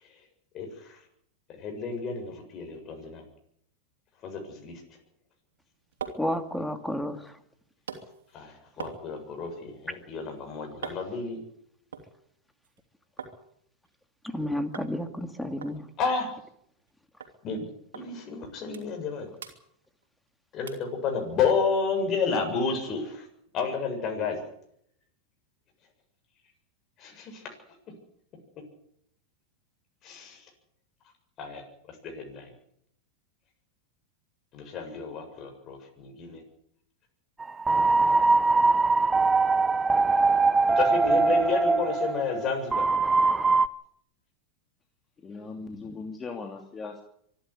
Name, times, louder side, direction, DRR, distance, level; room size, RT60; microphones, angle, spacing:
voice 1, 0.5-1.0 1.6-3.2 4.2-4.8 8.3-11.4 16.0-16.3 17.4-17.7 17.9-19.3 20.5-23.2 23.5-24.4 27.0-27.5 30.0-30.4 31.4-31.6 32.0-32.5 34.5-36.4 40.8-42.9, left 5 dB, 40° left, 3 dB, 7.4 m, -31 dB
sound 1, 5.5-13.4 13.7-14.4 14.7-14.9 15.2-15.3 15.6-16.9 17.2-17.4 17.9-18.1 18.4-19.1 19.4-20.3 20.7-20.9 21.4-21.5, right 6 dB, 80° right, 3.2 m, -44 dB
voice 2, 6.2-7.4 14.2-15.9, left 1 dB, 5° left, 9 dB, 2.4 m, -31 dB
sound 2, 37.4-43.7, right 3 dB, 15° right, 0.9 m, -22 dB
voice 3, 45.2-47.0, left 4 dB, 25° left, 4 dB, 2.8 m, -39 dB
25.0 x 11.5 x 9.9 m, 0.70 s
hypercardioid pair, 95°, 0 cm